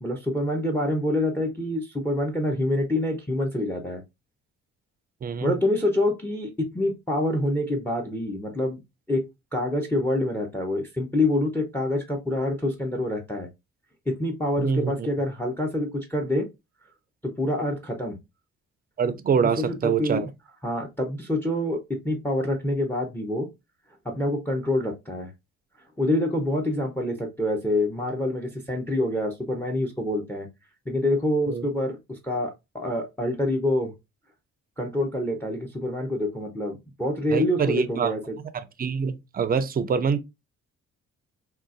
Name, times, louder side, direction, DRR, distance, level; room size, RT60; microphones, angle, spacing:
voice 1, 0.0-4.0 5.4-8.8 9.1-9.2 9.5-13.5 14.1-16.5 17.2-18.2 19.4-20.3 20.6-23.5 24.0-25.3 26.0-30.5 30.9-33.9 34.8-38.4, left 1 dB, 5° left, 0.7 m, -26 dB
voice 2, 5.2-5.5 14.6-14.9 19.0-20.3 31.5-31.7 37.3-38.1 38.5-40.2, right 6 dB, 30° right, 0.5 m, -25 dB
3.8 x 2.4 x 2.5 m
cardioid pair, 90°, 30 cm